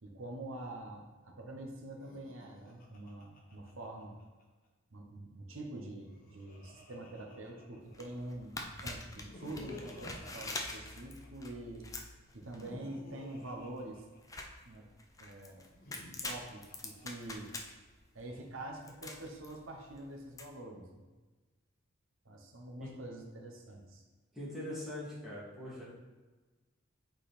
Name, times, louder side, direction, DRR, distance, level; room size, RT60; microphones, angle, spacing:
voice 1, 0.0-4.2 4.9-11.8 12.3-14.1 14.7-14.9 15.2-15.7 16.2-17.5 18.1-21.0 22.2-24.0, right 1 dB, 75° right, 2 dB, 1.0 m, -46 dB
Laughter, 1.9-4.4 5.8-8.1 9.0-11.5 12.4-14.8 15.6-17.6, left 1 dB, 45° left, 1.2 m, -54 dB
sound 1, 7.8-20.4, left 2 dB, 15° left, 0.6 m, -46 dB
voice 2, 24.3-25.8, left 1 dB, ahead, -9 dB, 2.1 m, -42 dB
8.1 x 4.0 x 4.2 m, 1.3 s
head